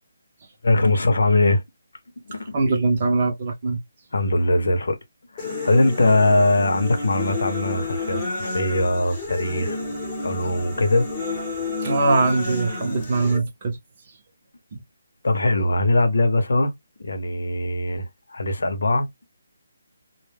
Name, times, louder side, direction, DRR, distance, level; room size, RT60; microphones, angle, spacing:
voice 1, 0.6-1.6 2.3-2.5 4.1-5.0 5.3-9.8 10.2-11.1 11.7-11.8 15.2-16.7 17.0-19.1, left 2 dB, 80° left, 0.8 m, -21 dB
voice 2, 2.5-3.8 11.8-13.8 14.7-14.8, right 3 dB, 30° right, 0.7 m, -22 dB
sound 1, 5.4-13.4, left 3 dB, 15° left, 0.9 m, -30 dB
2.2 x 2.2 x 3.3 m
hypercardioid pair, 175°, 0 cm